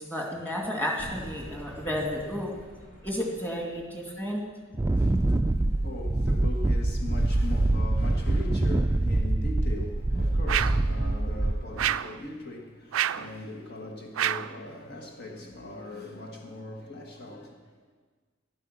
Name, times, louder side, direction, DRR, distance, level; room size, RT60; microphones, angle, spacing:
voice 1, 0.0-2.5 3.0-4.5 5.1-5.2, equal, 10° left, 2.3 m, -32 dB
sound 1, 1.0-6.2, equal, 80° left, 2.3 m, -48 dB
Wind, 4.7-11.9, right 2 dB, 15° right, 0.4 m, -25 dB
voice 2, 4.9-17.6, left 2 dB, 55° left, 1.6 m, -40 dB
sound 2, 10.5-10.9 11.8-12.2 12.9-13.3 14.2-14.6, right 11 dB, 85° right, 0.4 m, -28 dB
14.5 x 11.0 x 6.3 m
head